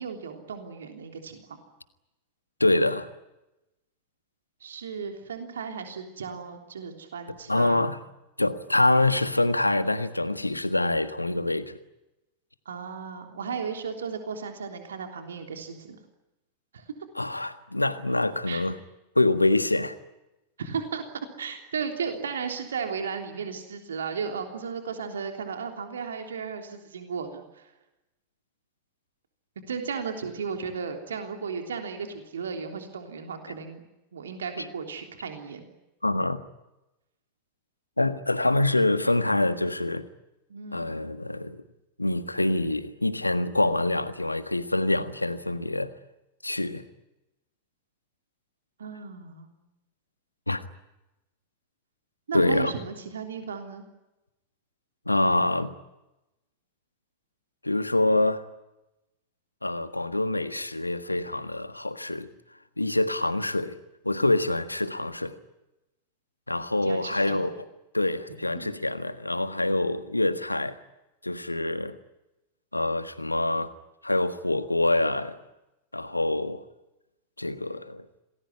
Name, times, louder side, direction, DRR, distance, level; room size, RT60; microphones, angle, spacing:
voice 1, 0.0-1.6 4.6-7.9 12.7-16.0 16.7-16.9 18.5-18.6 20.6-21.0 21.4-27.7 29.7-33.8 34.1-35.6 40.5-40.9 48.8-49.5 52.3-53.8 66.8-67.5 68.6-68.8, right 6 dB, 65° right, 3.4 m, -35 dB
voice 2, 2.6-3.1 7.5-8.0 8.4-11.8 17.2-18.8 19.1-19.9 36.0-36.4 38.0-40.0 40.7-41.6 42.0-45.9 46.4-46.8 50.5-50.6 52.3-52.7 55.1-55.7 57.6-58.4 59.6-62.3 62.8-63.8 64.0-65.4 66.5-67.6 67.9-70.7 71.2-71.9 72.7-73.7 74.0-75.4 75.9-76.6 77.4-78.0, left 2 dB, 85° left, 1.6 m, -25 dB
27.5 x 20.0 x 9.7 m
figure-of-eight pair, 90°, 0 cm